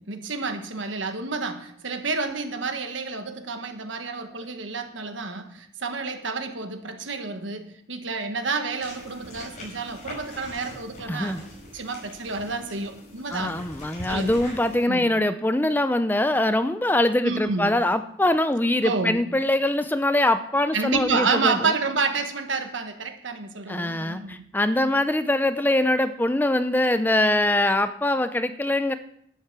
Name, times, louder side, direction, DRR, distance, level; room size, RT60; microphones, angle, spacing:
voice 1, 0.1-11.4 11.7-13.7 14.1-14.4 14.8-15.1 17.2-17.8 18.8-19.2 20.7-24.4, right 4 dB, 85° right, 7 dB, 1.4 m, -29 dB
sound 1, 8.8-14.8, left 1 dB, 40° left, 5.4 m, -42 dB
voice 2, 11.1-11.4 13.3-21.5 23.7-28.9, left 1 dB, 10° left, 11 dB, 0.5 m, -23 dB
11.5 x 9.9 x 6.0 m, 0.69 s
head